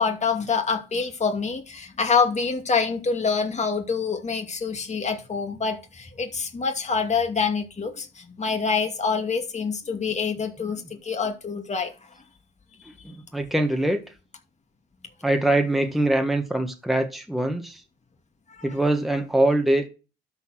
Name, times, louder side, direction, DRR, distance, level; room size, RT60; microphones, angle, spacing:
voice 1, 0.0-11.9 18.5-18.7, left 5 dB, 35° left, 2.4 m, -26 dB
voice 2, 13.0-14.0 15.2-17.8 18.6-19.9, right 1 dB, ahead, 1.5 m, -23 dB
12.0 x 4.5 x 6.0 m
cardioid pair, 90°, 20 cm